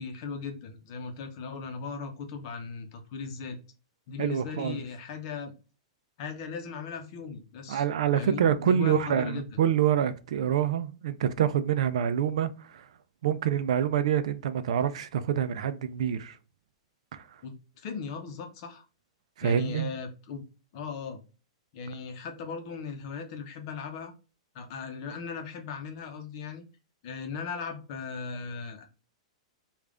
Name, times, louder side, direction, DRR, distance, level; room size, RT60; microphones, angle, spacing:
voice 1, 0.0-3.6 4.1-5.5 6.2-7.8 8.1-9.4 17.4-18.8 19.4-20.4 20.7-21.2 21.7-24.1 24.5-26.6 27.0-28.9, left 5 dB, 45° left, 0.8 m, -38 dB
voice 2, 4.2-4.8 7.7-12.9 13.2-16.4 17.1-17.2 19.4-19.9, right 9 dB, 70° right, 0.4 m, -26 dB
3.3 x 2.4 x 3.6 m
hypercardioid pair, 155°, 3 cm